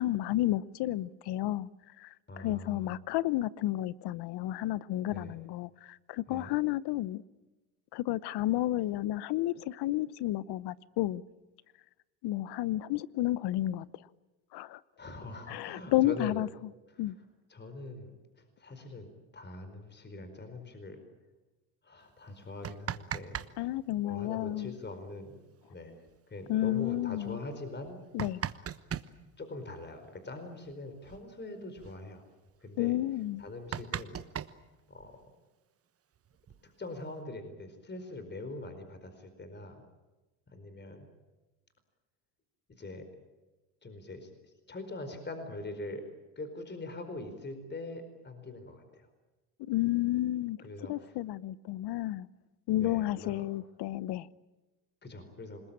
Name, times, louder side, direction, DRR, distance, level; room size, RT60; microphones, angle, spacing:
voice 1, 0.0-1.7 2.0-2.1 2.4-7.2 7.9-11.2 12.2-13.8 14.5-14.8 15.5-16.5 17.0-17.2 23.6-24.7 26.5-27.4 28.1-28.4 32.8-33.4 49.7-50.6 50.9-52.3 52.7-54.3, left 15 dB, 55° left, 1.0 m, -31 dB
voice 2, 2.3-2.9 5.1-5.4 6.3-6.5 15.0-16.4 16.9-17.1 17.5-18.1 18.4-21.0 21.8-23.5 24.0-25.4 25.7-26.0 26.3-28.0 29.4-32.2 32.6-33.0 33.4-34.2 34.9-35.1 36.6-39.8 40.5-41.1 42.8-43.1 43.8-46.1 46.4-49.1 50.6-51.2 52.7-53.4 55.0-55.6, left 2 dB, 20° left, 4.7 m, -43 dB
sound 1, 22.4-23.5 23.8-23.9 25.6-25.7 26.1-26.2 26.8-26.9 27.7-29.1 30.6-30.8 31.0-31.3 31.6-32.0 32.5-32.6 33.0-33.1 33.4-35.3 36.2-37.0, right 9 dB, 30° right, 1.2 m, -39 dB
27.5 x 20.5 x 8.8 m
supercardioid pair, 95°, 46 cm